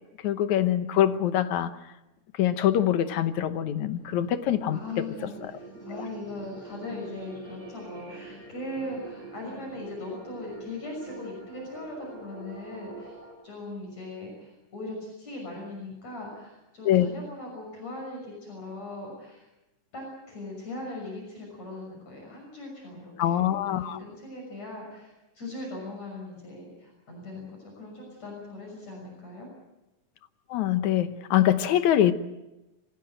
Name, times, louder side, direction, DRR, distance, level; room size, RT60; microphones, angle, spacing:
voice 1, 0.2-1.7 2.4-4.8 5.4-5.5 16.9-17.1 23.2-24.0 30.5-32.1, left 11 dB, 75° left, 2.2 m, -24 dB
sound 1, 3.8-13.3, right 3 dB, 50° right, 8.5 m, -45 dB
voice 2, 4.7-13.2 13.4-19.5 19.9-29.5, left 2 dB, 55° left, 7.4 m, -39 dB
25.5 x 16.5 x 9.0 m
omnidirectional pair, 3.6 m